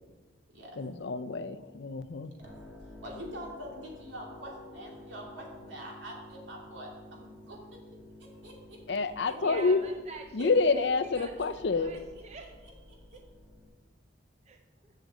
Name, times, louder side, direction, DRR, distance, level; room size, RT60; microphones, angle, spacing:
voice 1, 0.8-2.3 8.9-9.8 10.3-11.9, left 4 dB, 65° left, 11 dB, 0.5 m, -28 dB
sound 1, 2.4-13.7, left 1 dB, 10° right, 2.3 m, -51 dB
voice 2, 3.0-7.6 8.2-8.8 9.3-9.7 10.4-10.5 11.1-11.5 12.4-12.7 13.1-13.2, equal, 75° right, -2 dB, 2.8 m, -45 dB
voice 3, 9.4-10.4 10.7-12.7 13.1-13.2 14.5-14.9, right 4 dB, 35° right, 4 dB, 0.5 m, -46 dB
7.7 x 6.6 x 7.6 m, 1.2 s
head